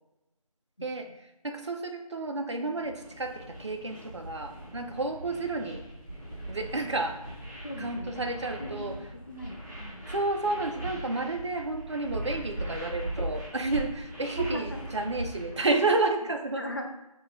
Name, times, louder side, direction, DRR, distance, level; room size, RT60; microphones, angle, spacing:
voice 1, 0.8-5.8 6.5-7.2 7.8-9.0 10.1-16.6, right 2 dB, 50° right, 4 dB, 0.5 m, -31 dB
sound 1, 2.8-15.7, right 1 dB, 30° right, 1.0 m, -40 dB
sound 2, 3.0-14.9, left 1 dB, 20° left, 0.8 m, -52 dB
voice 2, 7.6-8.2 8.6-9.0 9.3-10.1 14.4-14.8 16.6-16.9, left 1 dB, 35° left, 1 dB, 0.5 m, -38 dB
5.9 x 2.3 x 3.5 m, 0.94 s
figure-of-eight pair, 165°, 19 cm